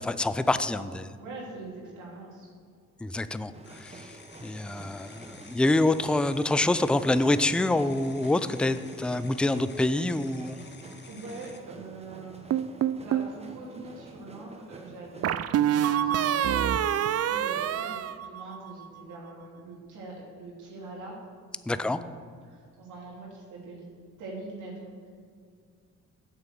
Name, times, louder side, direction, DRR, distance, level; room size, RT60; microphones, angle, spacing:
voice 1, 0.0-1.1 3.0-10.6 21.7-22.0, left 2 dB, 5° left, 13 dB, 0.4 m, -26 dB
voice 2, 1.2-2.5 11.1-12.5 12.9-15.6 16.0-21.2 21.7-22.2 22.4-23.8 24.2-25.1, right 2 dB, 80° right, -4 dB, 2.8 m, -43 dB
sound 1, 3.5-15.4, right 2 dB, 20° right, 1.1 m, -49 dB
sound 2, 3.6-11.6, left 4 dB, 35° left, 1.2 m, -51 dB
sound 3, 12.5-13.3 15.2-18.8, right 10 dB, 55° right, 0.5 m, -26 dB
8.8 x 6.8 x 7.6 m, 2.2 s
cardioid pair, 90°, 30 cm